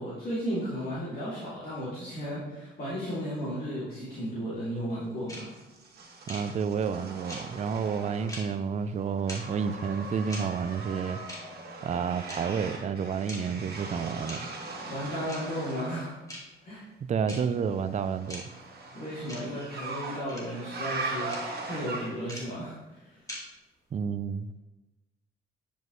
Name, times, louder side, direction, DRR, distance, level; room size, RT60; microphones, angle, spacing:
voice 1, 0.0-5.5 13.4-13.7 14.9-16.2 16.6-16.8 18.9-23.2, equal, 50° left, 2.6 m, -34 dB
sound 1, 5.3-5.4 6.3-6.4 7.3-7.4 8.3-8.4 9.3-9.4 10.3-10.4 11.3-11.4 12.3-12.4 13.3-13.4 14.3-14.4 15.3-15.4 16.3-16.4 17.3-17.4 18.3-18.4 19.3-19.4 20.3-20.4 21.3-21.4 22.3-22.4 23.3-23.4, left 1 dB, 15° left, 1.9 m, -39 dB
sound 2, 5.5-8.6 8.9-16.1 17.7-22.4, right 3 dB, 50° right, 2.0 m, -40 dB
voice 2, 6.3-11.2 11.8-14.5 17.1-18.4 23.9-24.5, right 6 dB, 35° right, 0.4 m, -30 dB
9.5 x 5.2 x 3.1 m
cardioid pair, 90°, 20 cm